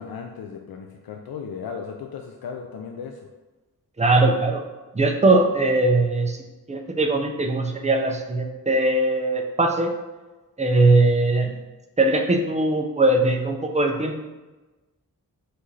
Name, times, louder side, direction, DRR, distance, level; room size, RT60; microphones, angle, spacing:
voice 1, 0.0-3.3, left 6 dB, 75° left, 2 dB, 0.5 m, -36 dB
voice 2, 4.0-4.6 4.9-9.9 10.6-11.6 12.0-14.2, right 2 dB, 20° right, 4 dB, 0.5 m, -20 dB
5.8 x 2.6 x 3.2 m, 1.2 s
wide cardioid pair, 90°, 37 cm